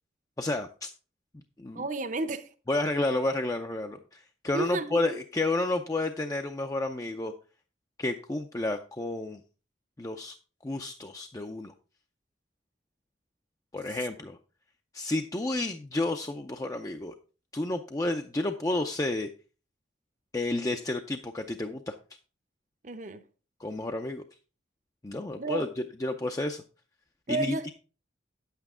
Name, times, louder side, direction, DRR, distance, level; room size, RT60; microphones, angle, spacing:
voice 1, 0.4-0.9 1.3-1.8 2.7-7.3 8.0-9.4 10.0-10.4 10.6-11.7 13.7-14.4 14.9-17.1 17.5-19.3 20.3-22.0 23.6-24.2 25.0-25.7 26.0-26.6 27.3-27.7, left 2 dB, 20° left, 0.5 m, -31 dB
voice 2, 1.7-2.5 4.5-5.0 22.8-23.2 25.4-25.7 27.3-27.7, right 3 dB, 45° right, 0.8 m, -32 dB
9.7 x 8.2 x 3.7 m
head